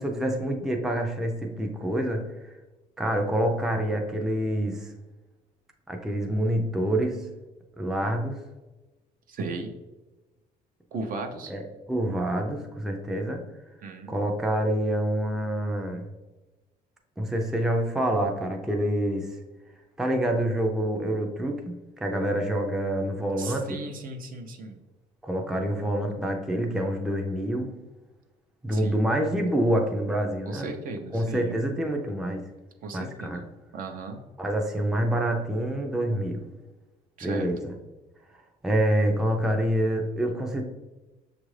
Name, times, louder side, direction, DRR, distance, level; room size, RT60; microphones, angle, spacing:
voice 1, 0.0-2.3 3.0-4.9 5.9-7.3 7.8-8.4 11.5-11.6 11.9-13.5 14.1-16.1 17.2-19.3 20.0-23.8 25.2-27.8 28.6-30.7 31.1-32.5 32.9-33.4 34.4-36.5 37.2-37.7 38.6-40.6, right 1 dB, 5° right, 2 dB, 0.4 m, -27 dB
voice 2, 9.3-9.7 10.9-11.5 13.8-14.2 23.4-24.8 28.7-29.0 30.5-31.5 32.8-33.4 33.7-34.2 37.2-37.5, right 3 dB, 55° right, 5 dB, 0.6 m, -36 dB
6.3 x 2.5 x 3.2 m, 1.1 s
cardioid pair, 110°, 17 cm